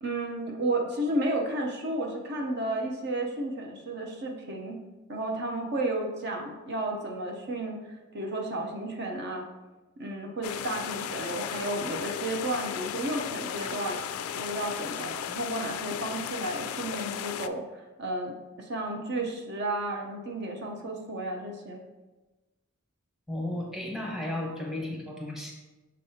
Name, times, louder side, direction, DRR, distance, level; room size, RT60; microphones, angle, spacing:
voice 1, 0.0-4.8 5.1-7.8 8.1-9.4 10.0-14.0 14.3-21.8, right 1 dB, 55° right, 1 dB, 0.7 m, -32 dB
sound 1, 10.4-17.5, left 9 dB, 85° left, 0.3 m, -35 dB
voice 2, 23.3-25.5, left 1 dB, ahead, -2 dB, 0.9 m, -34 dB
6.4 x 5.3 x 2.8 m, 1.1 s
head